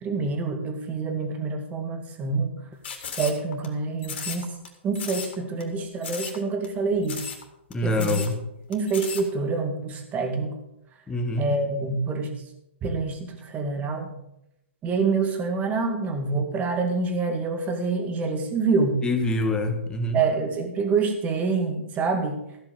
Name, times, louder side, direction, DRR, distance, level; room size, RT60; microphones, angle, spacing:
voice 1, 0.0-2.5 3.2-4.5 4.8-7.3 7.8-8.2 8.7-10.5 11.4-12.3 12.8-14.1 14.8-19.0 20.1-22.4, right 4 dB, 20° right, 4 dB, 2.2 m, -26 dB
sound 1, 2.8-3.7 4.0-4.7 4.9-5.3 5.6-5.7 6.0-6.4 6.6-6.7 7.0-7.4 7.7-7.8 8.0-8.3 8.7-9.2, left 6 dB, 60° left, 3.1 m, -35 dB
voice 2, 7.7-8.4 11.1-11.5 19.0-20.2, left 1 dB, 10° left, 5 dB, 1.6 m, -25 dB
15.0 x 5.8 x 7.0 m, 0.83 s
hypercardioid pair, 135°, 7 cm